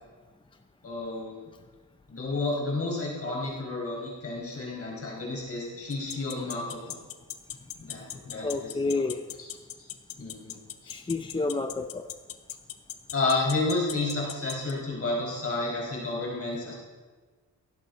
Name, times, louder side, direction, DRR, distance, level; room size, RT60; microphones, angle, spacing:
voice 1, 0.8-1.4 2.1-7.0 7.8-9.1 9.4-9.5 10.2-10.6 10.8-10.9 13.1-16.8, left 2 dB, 40° left, -3 dB, 4.7 m, -31 dB
sound 1, 5.9-14.7, left 11 dB, 80° left, 0.9 m, -37 dB
voice 2, 8.4-9.2 10.9-12.0, left 3 dB, 15° left, 7 dB, 0.5 m, -29 dB
16.5 x 11.5 x 5.3 m, 1.4 s
wide cardioid pair, 145°, 34 cm